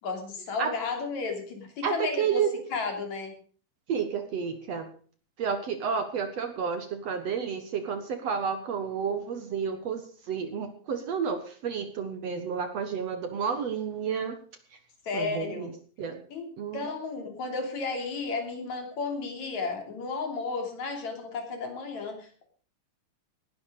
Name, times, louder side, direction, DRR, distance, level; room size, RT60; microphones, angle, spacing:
voice 1, 0.0-2.4 2.7-3.3 15.0-15.7 16.3-22.4, left 4 dB, 55° left, 5 dB, 4.3 m, -33 dB
voice 2, 1.8-2.6 3.9-4.9 5.4-14.4 15.1-15.7 16.0-16.2 16.6-16.9, right 7 dB, 55° right, 8 dB, 2.3 m, -31 dB
18.5 x 11.0 x 5.1 m, 0.42 s
omnidirectional pair, 3.9 m